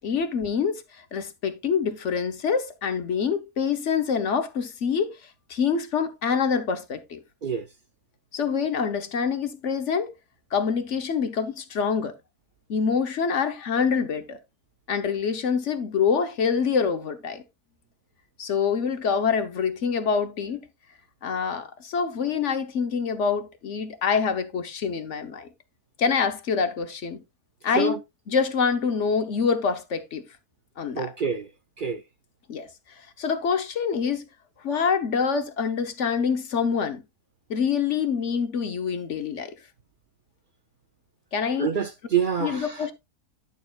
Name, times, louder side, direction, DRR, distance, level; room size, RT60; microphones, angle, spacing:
voice 1, 0.0-7.2 8.3-10.1 10.5-12.1 12.7-14.4 14.9-17.4 18.4-20.6 21.2-25.5 26.0-27.2 27.6-28.0 28.3-30.2 30.8-31.1 32.5-32.7 33.0-34.2 34.6-37.0 37.5-39.5 41.3-41.7 42.4-42.9, left 6 dB, 55° left, 1.2 m, -26 dB
voice 2, 30.9-31.5 31.8-32.0 41.6-42.9, right 7 dB, 60° right, 0.5 m, -26 dB
11.0 x 6.7 x 2.4 m
omnidirectional pair, 1.6 m